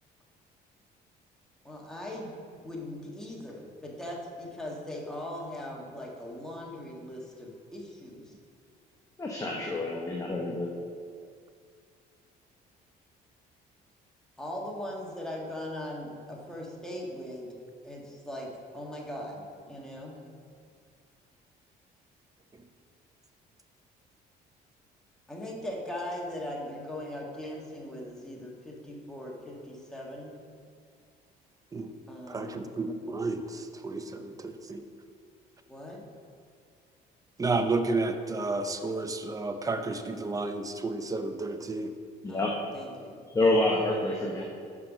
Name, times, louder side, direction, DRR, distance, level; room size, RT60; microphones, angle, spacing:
voice 1, 1.6-2.3 2.6-8.3 14.4-17.5 17.8-18.5 18.7-20.2 25.3-30.4 32.1-32.7 35.7-36.0 42.3-43.6, left 1 dB, 5° left, -3 dB, 1.5 m, -40 dB
voice 2, 9.2-10.7 42.2-42.5 43.3-44.4, left 2 dB, 20° left, -1 dB, 0.8 m, -27 dB
voice 3, 32.3-34.8 37.4-41.9, right 3 dB, 20° right, 7 dB, 0.6 m, -31 dB
6.1 x 5.5 x 5.9 m, 2.2 s
cardioid pair, 110°, 17 cm